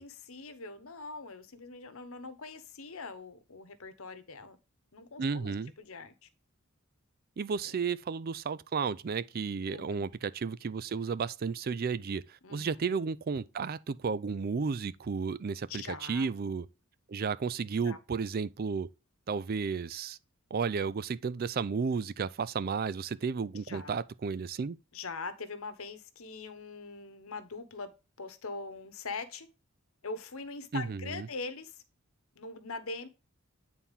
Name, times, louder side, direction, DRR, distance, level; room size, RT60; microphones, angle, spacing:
voice 1, 0.0-4.6 4.9-6.3 7.6-7.8 9.7-10.1 12.4-12.8 15.7-16.3 17.8-18.0 23.6-24.0 24.9-27.9 28.2-29.5 30.0-31.8 32.3-33.1, left 3 dB, 70° left, 1.1 m, -42 dB
voice 2, 5.2-5.7 7.4-16.7 17.1-18.9 19.3-20.2 20.5-24.8 30.7-31.3, right 5 dB, 45° right, 0.4 m, -33 dB
9.0 x 4.3 x 3.5 m
head